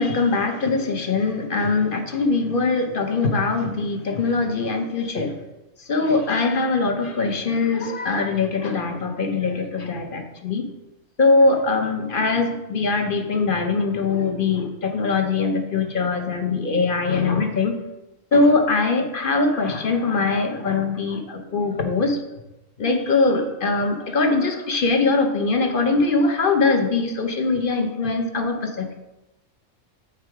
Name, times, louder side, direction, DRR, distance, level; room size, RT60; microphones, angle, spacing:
voice 1, 0.0-5.3 5.9-10.7 11.2-17.8 18.3-22.2 22.8-28.9, left 3 dB, 45° left, 4 dB, 1.0 m, -22 dB
8.0 x 4.9 x 4.6 m, 0.96 s
omnidirectional pair, 1.3 m